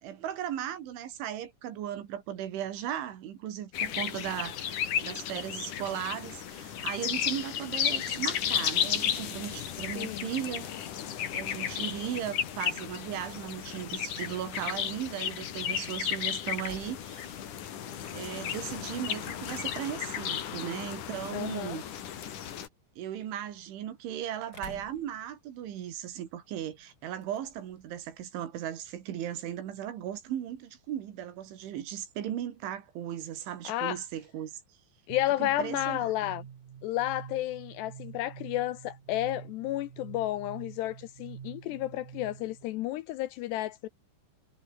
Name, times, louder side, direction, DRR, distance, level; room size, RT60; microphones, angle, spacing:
voice 1, 0.0-10.7 11.3-17.4 18.1-21.8 23.0-34.6 35.4-36.1, right 10 dB, 80° right, 4.8 m, -37 dB
sound 1, 3.7-22.7, left 9 dB, 55° left, 2.9 m, -34 dB
voice 2, 10.0-10.3 21.3-21.8 33.6-34.0 35.1-36.4 36.8-43.9, left 15 dB, 80° left, 2.6 m, -32 dB
sound 2, 23.8-29.5, left 2 dB, 20° left, 7.3 m, -58 dB
sound 3, 35.1-42.7, right 8 dB, 50° right, 3.6 m, -47 dB
omnidirectional pair, 5.4 m